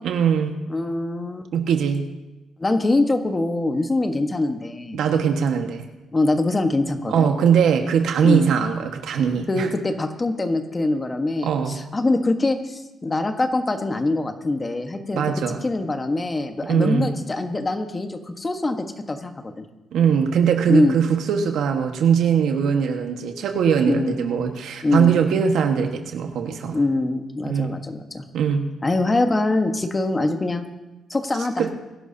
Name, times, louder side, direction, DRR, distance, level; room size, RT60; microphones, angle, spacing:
voice 1, 0.0-0.6 1.5-2.0 4.9-5.8 7.1-9.7 11.4-11.7 15.1-15.6 16.7-17.1 19.9-26.8 27.5-27.7 28.3-28.6 31.6-31.7, right 7 dB, 75° right, 4 dB, 1.5 m, -21 dB
voice 2, 0.7-1.5 2.6-5.0 6.1-7.3 8.2-8.5 9.5-15.2 15.6-19.6 20.7-21.0 23.9-24.2 24.8-25.1 26.7-28.2 28.8-30.6 31.1-31.7, left 2 dB, 25° left, 6 dB, 1.4 m, -23 dB
23.0 x 11.5 x 2.8 m, 1.0 s
cardioid pair, 90°, 0 cm